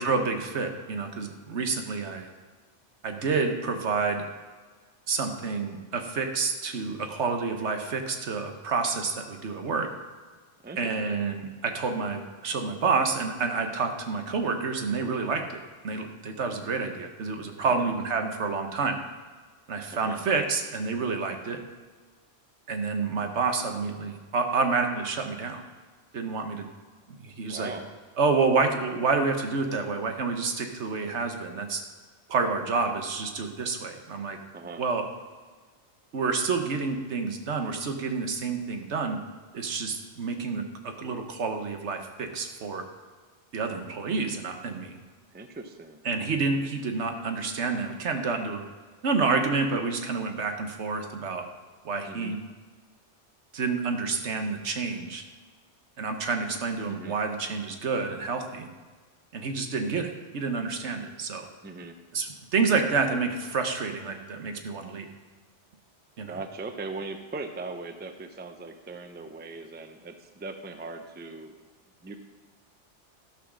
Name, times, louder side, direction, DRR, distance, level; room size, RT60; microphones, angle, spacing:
voice 1, 0.0-2.3 3.0-4.2 5.1-9.9 10.8-19.0 19.7-21.6 22.7-25.6 26.1-26.7 27.2-27.7 28.2-31.8 32.3-34.4 34.8-35.1 36.1-39.2 39.5-42.8 43.5-45.0 46.0-48.6 49.0-51.4 51.8-52.4 53.5-55.2 56.0-58.7 59.3-61.4 62.1-65.1 66.2-66.4, right 4 dB, 70° right, 5 dB, 1.3 m, -29 dB
voice 2, 10.6-11.2 17.7-17.9 19.9-20.2 27.5-27.9 34.5-34.8 45.3-46.0 52.1-52.4 56.9-57.2 61.6-62.0 66.2-71.5 72.0-72.2, right 3 dB, 10° right, 7 dB, 0.5 m, -39 dB
12.0 x 6.1 x 6.1 m, 1.5 s
omnidirectional pair, 1.2 m